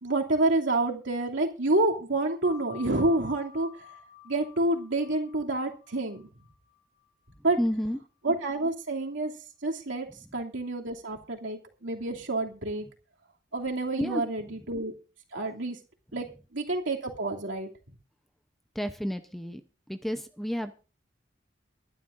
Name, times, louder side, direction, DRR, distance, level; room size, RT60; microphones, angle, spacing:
voice 1, 0.0-3.8 4.2-6.2 7.4-7.6 8.2-9.3 9.6-10.1 10.3-12.9 13.5-14.9 15.3-15.8 16.1-16.3 16.5-17.7, right 2 dB, 75° right, 0 dB, 2.7 m, -28 dB
sound 1, 2.4-7.6, left 9 dB, 50° left, 6.4 m, -51 dB
voice 2, 7.6-8.0 14.0-14.2 18.8-19.6 19.9-20.7, equal, ahead, 8 dB, 0.7 m, -30 dB
23.5 x 11.0 x 2.6 m, 0.35 s
head